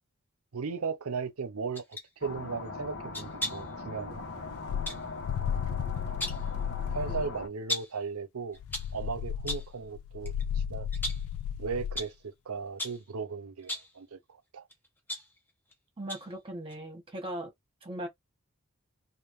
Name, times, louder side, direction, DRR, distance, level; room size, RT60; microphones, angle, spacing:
voice 1, 0.5-1.8 2.2-4.2 6.9-8.6 8.9-10.9 11.6-14.2 14.5-14.7, right 5 dB, 85° right, 0.7 m, -36 dB
sound 1, 1.7-2.1 3.1-3.7 4.9-5.1 6.0-6.5 7.7-8.0 8.5-9.0 9.5-9.8 10.2-10.4 10.9-11.3 12.0-12.2 12.8-13.1 13.6-14.0 14.7-15.7 16.1-16.4 16.7-16.8, left 1 dB, 10° left, 0.9 m, -37 dB
sound 2, 2.2-7.5, left 3 dB, 55° left, 1.2 m, -41 dB
sound 3, 4.1-7.4 8.6-12.0, left 8 dB, 70° left, 0.3 m, -34 dB
voice 2, 16.0-17.5 17.8-18.1, right 1 dB, 25° right, 1.4 m, -39 dB
3.5 x 2.5 x 3.1 m
head